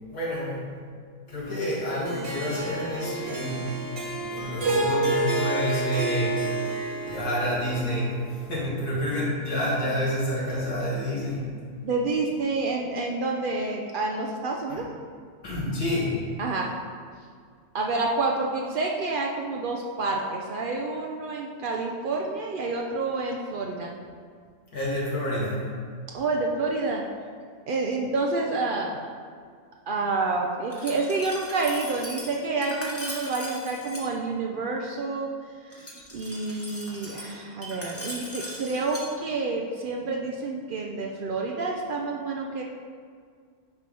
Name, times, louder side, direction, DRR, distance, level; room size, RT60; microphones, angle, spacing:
voice 1, 0.1-0.7 1.3-3.7 4.1-6.4 7.0-11.5 14.7-14.8 15.4-16.2 24.7-25.7, equal, 85° left, -7 dB, 2.6 m, -28 dB
Harp, 2.1-8.4, right 2 dB, 45° right, 1.0 m, -29 dB
voice 2, 11.8-14.8 16.4-16.7 17.7-23.9 26.1-27.0 27.7-29.0 29.9-35.3 35.6-42.6, right 3 dB, 80° right, 0 dB, 0.4 m, -28 dB
Glass, 30.7-34.1 35.7-39.1, equal, 10° left, 0.8 m, -39 dB
9.6 x 3.4 x 5.2 m, 2.1 s
omnidirectional pair, 1.6 m